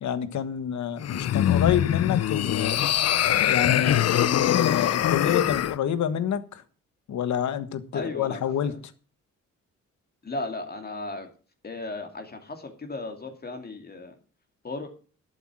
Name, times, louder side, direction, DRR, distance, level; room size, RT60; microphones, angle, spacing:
voice 1, 0.0-2.8 3.5-6.6 7.1-8.7, left 9 dB, 75° left, 1.4 m, -28 dB
sound 1, 1.0-5.8, left 11 dB, 60° left, 0.6 m, -23 dB
voice 2, 7.9-8.8 10.2-11.3 11.6-14.1 14.6-14.9, left 2 dB, 35° left, 2.5 m, -35 dB
11.5 x 8.4 x 6.2 m
cardioid pair, 120°, 29 cm